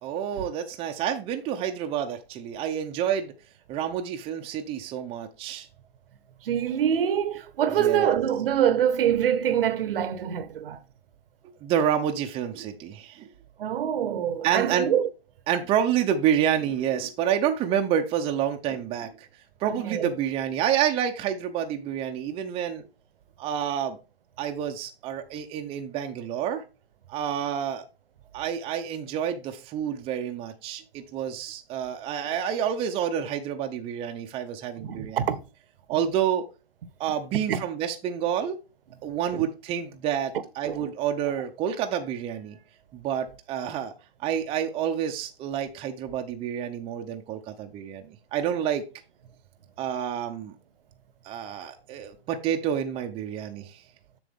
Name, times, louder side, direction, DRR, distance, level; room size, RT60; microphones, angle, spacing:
voice 1, 0.0-3.3 3.7-5.7 7.8-8.1 11.6-13.3 14.4-14.9 15.5-19.3 19.6-22.9 23.4-24.0 24.4-26.6 27.1-27.9 28.3-35.2 35.9-36.5 37.0-38.6 39.0-42.6 42.9-43.9 44.2-48.8 49.8-50.5 51.2-53.8, right 9 dB, 15° right, 0.7 m, -28 dB
voice 2, 6.4-10.8 13.6-15.1 19.6-20.1 34.8-35.4 37.5-37.6 39.3-39.5 40.6-40.9, right 9 dB, 60° right, 1.0 m, -25 dB
7.4 x 6.7 x 3.6 m
hypercardioid pair, 140°, 31 cm